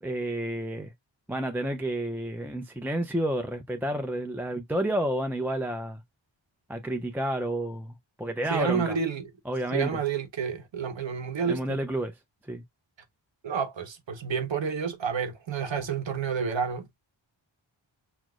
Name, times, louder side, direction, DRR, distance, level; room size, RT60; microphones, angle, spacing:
voice 1, 0.0-0.9 1.3-6.0 6.7-9.0 9.5-9.9 11.5-12.1 12.5-12.6, right 1 dB, 5° right, 0.4 m, -30 dB
voice 2, 8.5-9.3 9.7-11.8 13.4-17.0, right 6 dB, 70° right, 1.0 m, -29 dB
6.1 x 2.0 x 2.3 m
wide cardioid pair, 90°, 46 cm